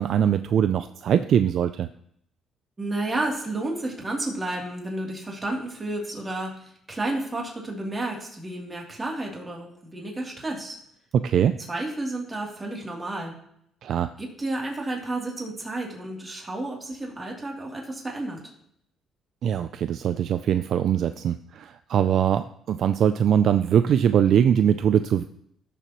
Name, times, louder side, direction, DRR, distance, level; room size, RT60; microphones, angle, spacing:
voice 1, 0.0-1.9 11.2-11.6 13.8-14.1 19.4-25.3, right 9 dB, 65° right, 11 dB, 0.4 m, -22 dB
voice 2, 2.8-10.8 11.7-13.3 14.2-18.5, right 2 dB, 25° right, -1 dB, 3.0 m, -31 dB
16.5 x 7.0 x 3.1 m, 0.71 s
cardioid pair, 95°, 0 cm